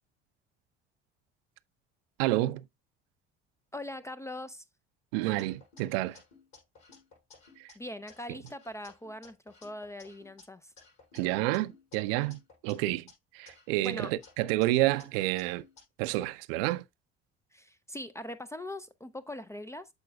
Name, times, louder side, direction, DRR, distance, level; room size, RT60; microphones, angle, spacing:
voice 1, 2.2-2.6 5.1-6.2 7.6-7.7 8.3-8.4 11.1-13.1 13.3-15.6 16.0-16.8, right 17 dB, 60° right, 0.6 m, -29 dB
voice 2, 3.7-4.6 7.8-10.7 13.8-14.1 17.5-19.9, left 1 dB, 10° left, 0.4 m, -41 dB
sound 1, 5.4-7.7 8.1-10.4 10.8-13.1 13.5-15.8, left 4 dB, 50° left, 5.5 m, -57 dB
13.5 x 4.7 x 2.2 m
figure-of-eight pair, 55°, 34 cm